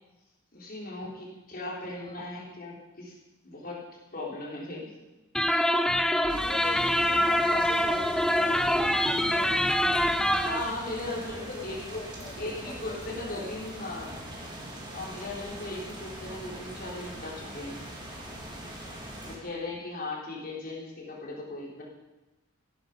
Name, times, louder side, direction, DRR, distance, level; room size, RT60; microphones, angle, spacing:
voice 1, 0.5-3.1 3.4-3.8 4.1-4.9 5.5-5.7 10.3-12.1 12.4-14.2 14.9-17.8 19.2-21.8, left 2 dB, 45° left, -3 dB, 4.0 m, -37 dB
sound 1, 5.3-10.7, equal, ahead, 0.4 m, -25 dB
voice 2, 6.3-9.6 11.2-11.6 12.0-13.6, left 3 dB, 25° left, 6 dB, 0.8 m, -43 dB
sound 2, 6.3-19.4, right 1 dB, 20° right, 3.1 m, -42 dB
16.0 x 12.0 x 5.4 m, 1.0 s
head